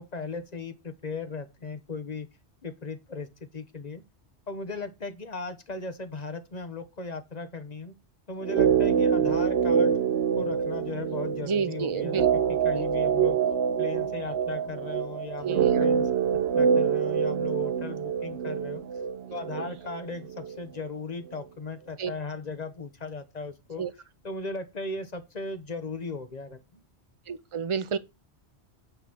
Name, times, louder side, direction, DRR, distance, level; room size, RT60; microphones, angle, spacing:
voice 1, 0.0-2.3 2.6-4.0 4.5-7.9 8.3-9.9 10.4-13.4 13.8-16.1 16.5-18.9 19.3-23.8 24.2-26.8, left 3 dB, 40° left, 1.1 m, -37 dB
sound 1, 8.4-20.6 20.8-20.9, right 7 dB, 70° right, 0.9 m, -26 dB
voice 2, 11.4-12.3 12.7-12.8 15.4-15.9 19.6-19.7 22.0-22.1 23.8-23.9 27.3-28.0, right 6 dB, 35° right, 0.6 m, -30 dB
8.9 x 4.0 x 6.0 m
omnidirectional pair, 1.1 m